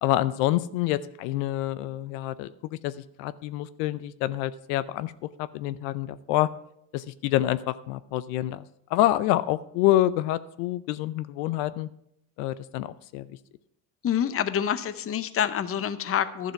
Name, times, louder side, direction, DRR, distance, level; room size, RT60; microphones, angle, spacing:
voice 1, 0.0-5.1 5.4-6.5 6.9-8.6 8.9-11.9 12.4-13.3, left 14 dB, 80° left, 15 dB, 0.7 m, -27 dB
voice 2, 14.0-16.5, left 9 dB, 30° left, 13 dB, 0.7 m, -27 dB
11.5 x 7.2 x 5.8 m, 0.75 s
supercardioid pair, 100°, 49 cm